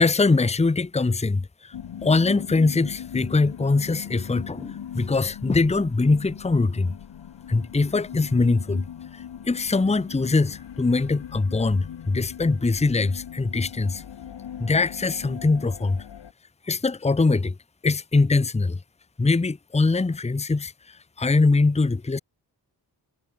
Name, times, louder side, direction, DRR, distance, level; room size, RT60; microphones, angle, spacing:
voice 1, 0.0-1.7 2.0-6.9 7.5-8.9 9.1-14.0 14.6-16.1 16.6-17.6 17.8-18.8 19.2-22.2, left 3 dB, 15° left, 0.9 m, -22 dB
sound 1, 1.7-16.3, left 9 dB, 85° left, 3.6 m, -40 dB
wide cardioid pair, 110°, 41 cm